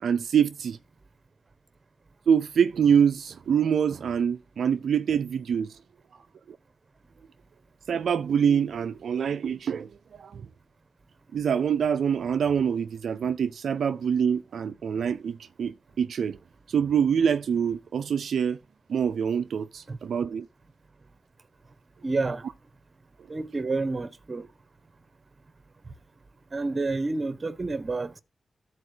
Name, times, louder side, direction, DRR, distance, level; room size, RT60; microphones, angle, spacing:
voice 1, 0.0-0.8 2.3-5.8 6.1-6.2 6.5-6.6 7.9-10.5 11.3-16.4 16.7-18.6 18.9-20.5, right 7 dB, 80° right, 0.4 m, -25 dB
voice 2, 22.0-22.5 23.3-24.5 25.9-26.0 26.5-28.2, right 3 dB, 45° right, 1.1 m, -29 dB
13.0 x 4.6 x 4.9 m
supercardioid pair, 40°, 0 cm